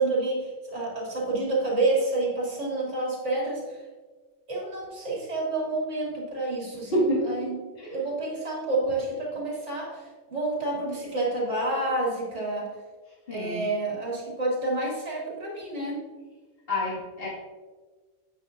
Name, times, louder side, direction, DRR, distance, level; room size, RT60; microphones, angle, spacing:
voice 1, 0.0-3.8 4.5-7.6 7.9-12.8 13.3-16.1, right 2 dB, 65° right, -4 dB, 2.5 m, -29 dB
voice 2, 6.7-7.2 7.8-8.0 13.3-13.7 16.7-17.3, equal, 50° left, -6 dB, 2.1 m, -27 dB
9.2 x 7.5 x 2.5 m, 1.4 s
omnidirectional pair, 1.3 m